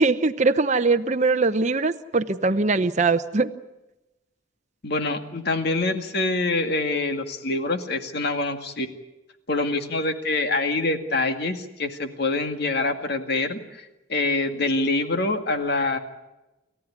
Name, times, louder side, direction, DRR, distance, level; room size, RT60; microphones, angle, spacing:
voice 1, 0.0-3.5 14.5-14.6, right 3 dB, 35° right, 9 dB, 0.8 m, -21 dB
voice 2, 4.8-8.9 9.5-16.0, left 2 dB, 50° left, 6 dB, 2.0 m, -25 dB
29.5 x 14.5 x 9.7 m, 1.0 s
head